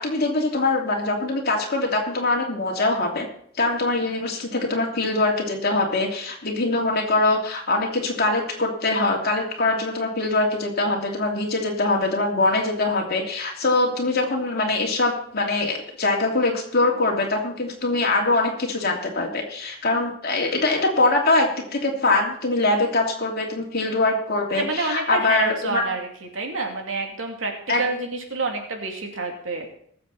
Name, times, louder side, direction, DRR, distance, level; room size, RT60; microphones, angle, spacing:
voice 1, 0.0-3.3 3.6-25.9 27.7-27.8, left 2 dB, 55° left, 0 dB, 2.9 m, -23 dB
voice 2, 24.6-26.1 26.3-29.7, right 3 dB, 85° right, 2 dB, 2.8 m, -28 dB
20.0 x 7.6 x 4.2 m, 0.66 s
head